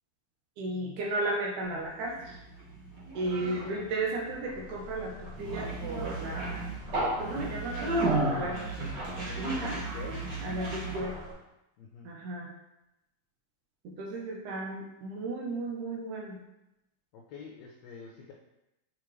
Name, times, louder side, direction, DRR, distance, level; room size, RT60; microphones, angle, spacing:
voice 1, 0.6-2.4 3.1-6.6 7.2-8.6 9.2-9.8 10.4-11.1 12.0-12.5 14.0-16.4, right 2 dB, 75° right, -2 dB, 2.3 m, -34 dB
Conversation, 1.8-11.3, right 2 dB, 45° right, 1.7 m, -34 dB
voice 2, 3.4-4.2 9.5-10.3 11.8-12.1 17.1-18.3, left 5 dB, 75° left, -1 dB, 1.6 m, -47 dB
6.9 x 4.9 x 3.1 m, 0.90 s
omnidirectional pair, 3.7 m